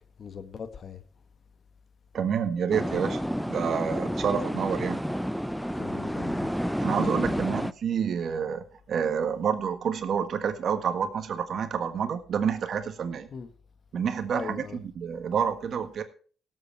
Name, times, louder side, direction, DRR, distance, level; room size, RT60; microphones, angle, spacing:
voice 1, 0.2-1.0 5.7-6.5 13.3-13.5 14.3-14.8, left 6 dB, 50° left, 1.4 m, -40 dB
voice 2, 2.1-3.2 3.5-5.0 6.8-13.3 13.9-16.0, right 7 dB, 60° right, 1.6 m, -28 dB
sound 1, 2.7-7.7, equal, ahead, 0.5 m, -30 dB
17.5 x 8.0 x 4.5 m
cardioid pair, 90°, 0 cm